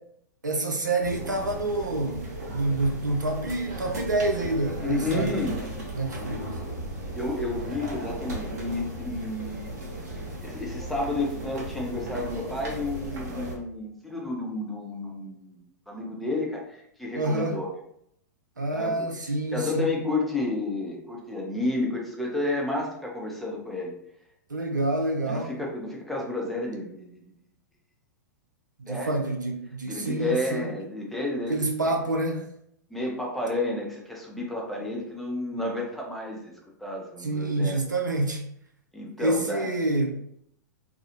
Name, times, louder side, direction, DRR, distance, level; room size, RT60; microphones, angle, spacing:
voice 1, 0.4-2.2 2.5-5.6 6.0-6.4 17.2-17.6 18.6-19.9 24.5-25.5 28.8-30.7 31.5-32.4 37.2-38.4 39.2-40.1, right 2 dB, 85° right, 2 dB, 0.5 m, -27 dB
sound 1, 1.0-13.6, right 1 dB, 60° right, 0.8 m, -36 dB
voice 2, 4.8-5.6 7.1-9.8 10.4-17.7 18.7-19.1 19.5-23.9 25.3-27.2 28.9-29.2 29.9-31.6 31.8-32.0 32.9-36.5 36.8-37.8 38.9-39.7, left 2 dB, ahead, -3 dB, 0.6 m, -31 dB
2.3 x 2.0 x 2.8 m, 0.72 s
figure-of-eight pair, 105°, 10 cm